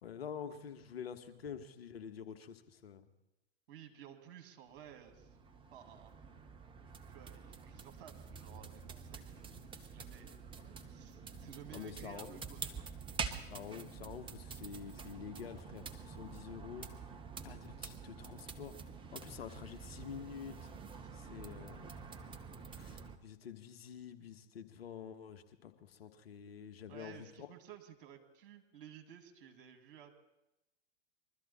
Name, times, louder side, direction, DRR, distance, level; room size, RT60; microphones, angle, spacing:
voice 1, 0.0-3.1 11.7-12.4 13.5-16.9 17.4-18.8 19.1-20.7 21.1-21.9 22.7-27.5, left 7 dB, 70° left, 7 dB, 1.5 m, -48 dB
voice 2, 3.7-5.4 5.7-6.1 7.1-10.4 10.8-12.7 26.9-30.1, right 9 dB, 55° right, 6 dB, 2.4 m, -55 dB
sound 1, 4.7-23.2, right 5 dB, 15° right, 1.1 m, -47 dB
22.5 x 13.0 x 4.3 m, 0.91 s
figure-of-eight pair, 100°, 31 cm